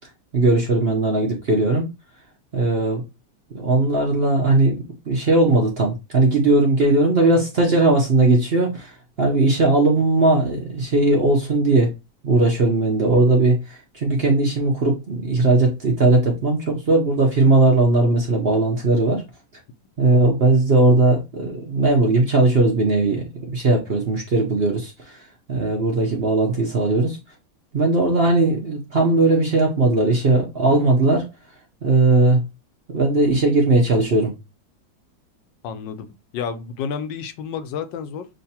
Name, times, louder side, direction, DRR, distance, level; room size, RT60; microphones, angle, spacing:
voice 1, 0.3-1.9 2.5-3.0 3.5-11.9 12.2-19.2 20.0-25.2 25.5-27.2 27.7-31.3 31.8-32.4 32.9-34.3, right 2 dB, 50° right, 0.7 m, -18 dB
voice 2, 35.6-36.1 36.3-38.3, left 6 dB, 85° left, 1.3 m, -30 dB
6.5 x 2.5 x 2.8 m
omnidirectional pair, 1.9 m